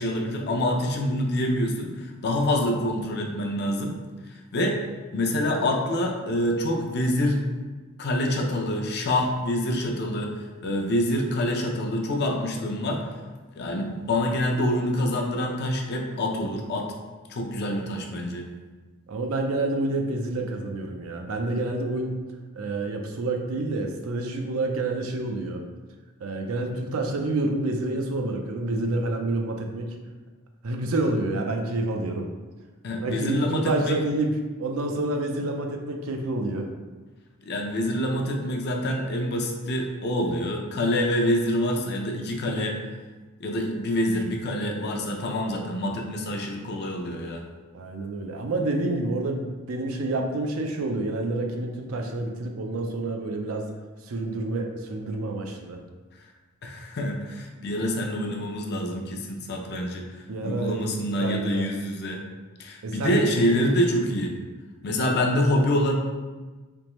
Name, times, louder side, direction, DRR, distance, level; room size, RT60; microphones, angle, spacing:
voice 1, 0.0-4.0 4.5-4.8 5.1-7.4 8.0-13.0 13.5-16.9 17.3-18.5 32.8-34.0 37.4-42.8 43.4-47.4 56.6-60.1 60.4-62.2 62.6-64.3 64.8-65.9, left 1 dB, 55° left, 2 dB, 0.5 m, -26 dB
voice 2, 19.1-22.2 22.5-25.6 26.2-30.0 30.6-32.3 33.0-36.7 47.7-53.7 54.0-55.8 60.3-61.7 62.8-63.2 63.7-63.8, right 2 dB, 85° right, 3 dB, 0.5 m, -28 dB
3.4 x 3.0 x 3.0 m, 1.3 s
head